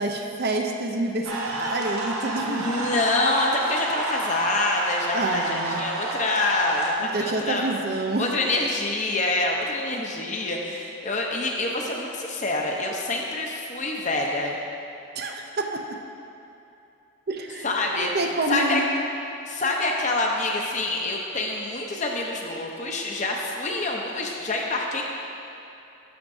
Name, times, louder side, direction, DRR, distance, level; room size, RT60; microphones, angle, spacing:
voice 1, 0.0-2.9 5.1-5.8 7.0-8.3 15.2-15.8 17.3-17.7 18.0-18.9, right 2 dB, 45° right, 2 dB, 0.5 m, -28 dB
sound 1, 1.2-6.9, right 2 dB, 70° right, 1.0 m, -30 dB
voice 2, 2.5-7.7 8.2-14.6 17.6-18.8 19.5-25.0, left 2 dB, 35° left, 0 dB, 0.7 m, -26 dB
12.0 x 5.8 x 2.6 m, 2.8 s
head